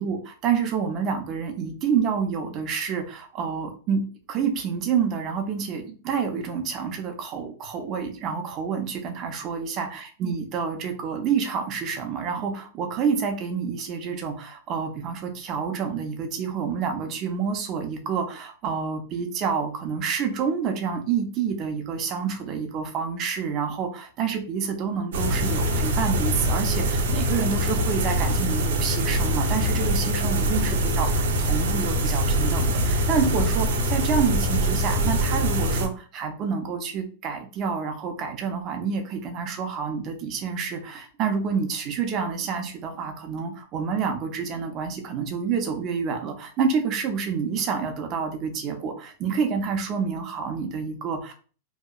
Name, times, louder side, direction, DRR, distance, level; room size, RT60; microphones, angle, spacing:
voice 1, 0.0-51.3, right 6 dB, 30° right, 4 dB, 0.5 m, -28 dB
sound 1, 25.1-35.9, equal, 85° right, 0.5 m, -23 dB
2.7 x 2.1 x 2.3 m, 0.39 s
supercardioid pair, 160°, 0 cm